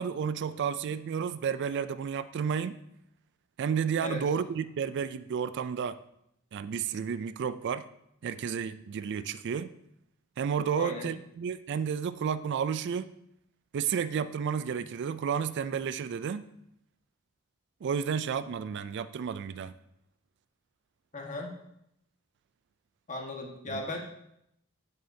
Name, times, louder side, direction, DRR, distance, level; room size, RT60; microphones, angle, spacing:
voice 1, 0.0-2.8 3.6-6.0 6.5-7.8 8.2-9.7 10.4-13.1 13.7-16.4 17.8-19.7 23.7-24.0, right 7 dB, 60° right, 14 dB, 0.3 m, -31 dB
voice 2, 10.7-11.1 21.1-21.5 23.1-24.0, left 2 dB, 35° left, 1 dB, 1.5 m, -36 dB
10.5 x 7.6 x 2.7 m, 0.76 s
head